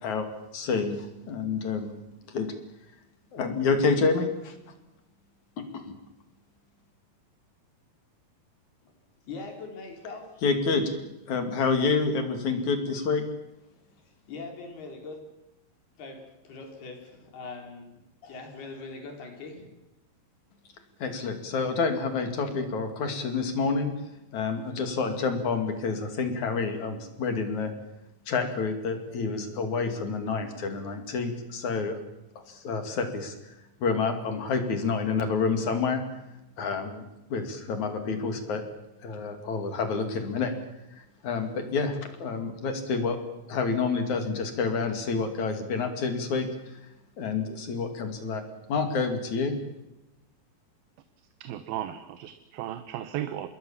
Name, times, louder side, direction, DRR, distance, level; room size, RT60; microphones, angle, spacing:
voice 1, 0.0-1.9 2.3-2.5 3.3-4.6 5.6-6.0 10.4-10.9 11.3-13.3 21.0-23.9 24.3-27.7 28.3-32.0 32.5-33.4 33.8-36.0 36.6-37.0 37.3-38.6 39.0-40.5 41.2-43.2 43.5-46.5 47.2-48.4 48.7-49.6, left 4 dB, 50° left, 7 dB, 3.7 m, -28 dB
voice 2, 9.3-10.3 14.3-15.4 16.0-19.7, left 3 dB, 85° left, 3 dB, 6.1 m, -41 dB
voice 3, 51.4-53.5, right 12 dB, 75° right, 10 dB, 2.8 m, -35 dB
27.0 x 21.0 x 7.2 m, 0.96 s
omnidirectional pair, 4.4 m